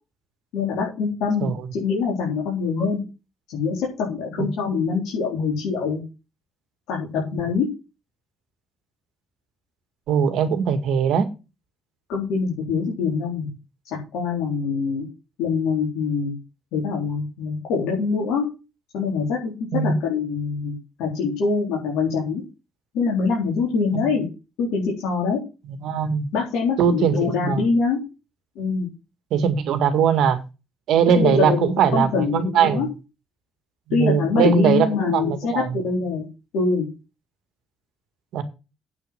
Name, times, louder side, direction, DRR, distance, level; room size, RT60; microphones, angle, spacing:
voice 1, 0.5-3.0 3.5-6.0 6.9-7.7 12.1-13.5 13.9-15.1 15.4-16.3 16.7-18.5 18.9-22.4 22.9-24.3 24.6-25.4 26.3-28.0 28.6-28.9 31.1-32.9 33.9-36.2 36.5-36.9, left 5 dB, 85° left, 4.1 m, -24 dB
voice 2, 10.1-11.3 19.7-19.9 23.9-24.0 25.8-26.3 26.8-27.6 29.3-30.4 30.9-32.8 33.9-35.8 38.3-38.4, right 7 dB, 80° right, 1.9 m, -20 dB
8.9 x 6.1 x 7.7 m
supercardioid pair, 55°, 0 cm